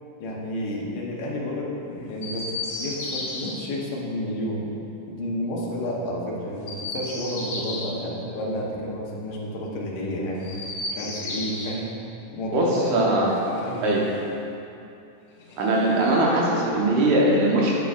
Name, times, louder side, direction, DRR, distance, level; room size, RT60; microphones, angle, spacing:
voice 1, 0.2-4.7 5.1-10.5 10.9-11.9 12.3-13.3 13.6-14.1, equal, 60° left, -4 dB, 1.6 m, -30 dB
Chirp tweet, 2.2-3.5 6.5-8.0 10.3-11.8 13.2-14.3 15.4-16.3, left 2 dB, 85° left, 1.2 m, -34 dB
voice 2, 12.5-13.3 13.8-14.1 15.6-17.8, right 1 dB, 65° right, -4 dB, 2.4 m, -21 dB
8.5 x 8.2 x 2.5 m, 2.8 s
omnidirectional pair, 3.9 m